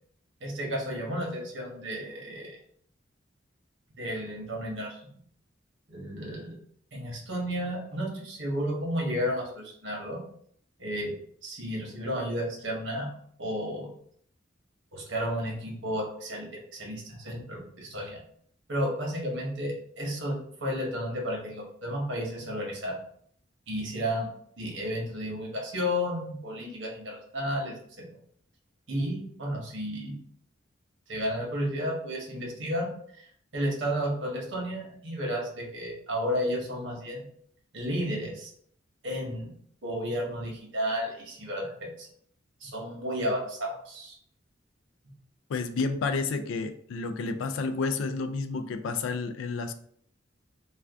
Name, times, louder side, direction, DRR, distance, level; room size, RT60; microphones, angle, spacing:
voice 1, 0.4-2.5 4.0-5.2 5.9-6.5 6.9-10.2 10.8-11.1 11.4-13.1 13.4-13.9 14.9-16.5 16.7-18.2 18.7-23.0 23.7-24.3 24.6-28.0 28.9-30.2 31.1-32.9 33.2-33.3 33.5-37.2 37.7-38.5 39.0-39.5 39.8-42.1 42.6-44.2, equal, 75° right, -1 dB, 0.9 m, -32 dB
voice 2, 45.5-49.7, left 4 dB, 80° left, 8 dB, 0.3 m, -30 dB
2.5 x 2.2 x 3.4 m, 0.62 s
head